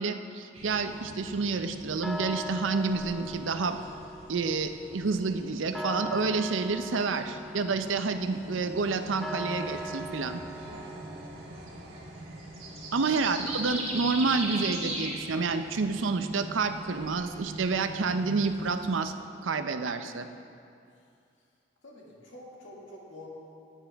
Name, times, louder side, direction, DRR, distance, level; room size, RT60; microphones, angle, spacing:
voice 1, 0.0-3.8 4.3-10.4 12.9-19.1 19.4-20.3, right 4 dB, 90° right, 9 dB, 0.6 m, -29 dB
sound 1, 0.5-19.0, right 1 dB, 35° right, 1.9 m, -43 dB
sound 2, 0.7-11.9, equal, ahead, 0.3 m, -41 dB
sound 3, 8.2-18.6, right 1 dB, 55° right, 1.3 m, -45 dB
voice 2, 10.7-11.9 12.9-13.1 20.9-21.1 21.4-21.5 21.8-23.3, left 1 dB, 80° left, -3 dB, 2.1 m, -50 dB
13.5 x 9.1 x 3.5 m, 2.4 s
head